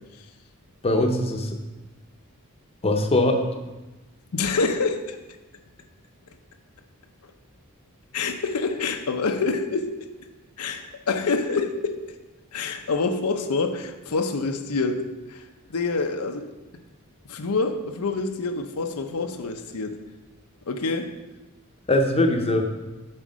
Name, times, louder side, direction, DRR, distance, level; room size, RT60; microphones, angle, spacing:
voice 1, 0.8-1.6 2.8-3.4 21.9-22.6, left 1 dB, 25° left, 4 dB, 0.7 m, -21 dB
voice 2, 4.3-5.2 8.1-10.0 10.6-12.0 12.5-15.4 15.7-16.5 17.3-20.0 20.7-21.1, left 4 dB, 90° left, 6 dB, 0.7 m, -26 dB
7.6 x 4.6 x 6.2 m, 1.1 s
head